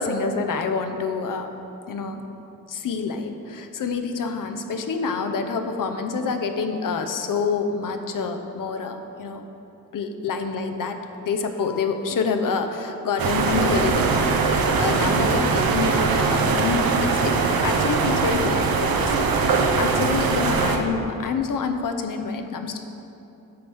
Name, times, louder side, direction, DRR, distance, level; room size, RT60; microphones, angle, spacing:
voice 1, 0.0-1.5 1.9-2.2 2.7-9.4 9.9-17.3 17.6-22.8, left 4 dB, 60° left, 6 dB, 0.7 m, -27 dB
sound 1, 13.2-20.8, right 4 dB, 75° right, 0.7 m, -21 dB
9.6 x 6.2 x 3.5 m, 2.9 s
supercardioid pair, 50°, 36 cm